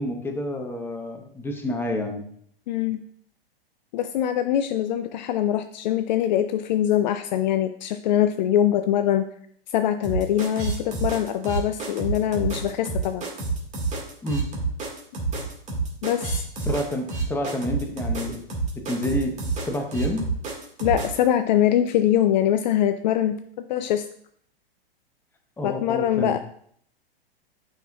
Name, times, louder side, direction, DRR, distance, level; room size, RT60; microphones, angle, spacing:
voice 1, 0.0-2.3 14.2-14.5 16.6-18.4 18.9-19.3 19.6-20.2 25.6-26.3, left 1 dB, 5° left, 3 dB, 0.9 m, -29 dB
voice 2, 2.7-3.0 3.9-9.3 9.7-13.3 16.0-16.4 20.8-24.1 25.6-26.4, left 11 dB, 50° left, 9 dB, 0.4 m, -23 dB
sound 1, 10.0-21.2, right 4 dB, 25° right, 1.8 m, -28 dB
9.0 x 5.7 x 2.3 m, 0.64 s
hypercardioid pair, 105°, 30 cm